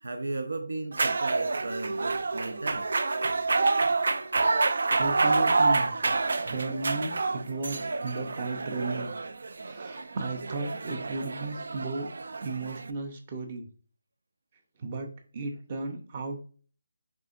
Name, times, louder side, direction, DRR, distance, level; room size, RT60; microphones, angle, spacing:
voice 1, 0.0-2.9, right 2 dB, 85° right, 5 dB, 0.7 m, -35 dB
sound 1, 0.9-12.9, right 3 dB, 60° right, 0.4 m, -28 dB
voice 2, 5.0-5.9 6.4-9.1 9.6-12.1 12.4-13.7 14.8-16.4, right 3 dB, 20° right, 4 dB, 0.6 m, -34 dB
5.3 x 3.6 x 2.5 m, 0.41 s
hypercardioid pair, 175°, 0 cm